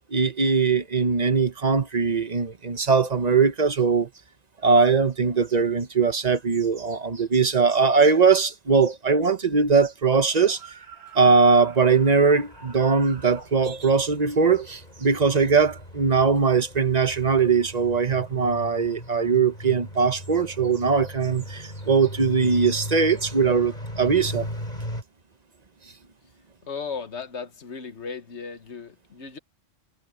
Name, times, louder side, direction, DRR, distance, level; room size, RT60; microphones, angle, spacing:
voice 1, 0.1-4.1 4.6-10.6 11.1-24.5, right 5 dB, 35° right, 1.0 m, -21 dB
sound 1, 10.1-13.5, right 6 dB, 60° right, 7.7 m, -46 dB
sound 2, 11.8-25.0, equal, 35° left, 8.0 m, -39 dB
voice 2, 26.7-29.4, left 5 dB, 60° left, 1.5 m, -36 dB
omnidirectional pair, 1.3 m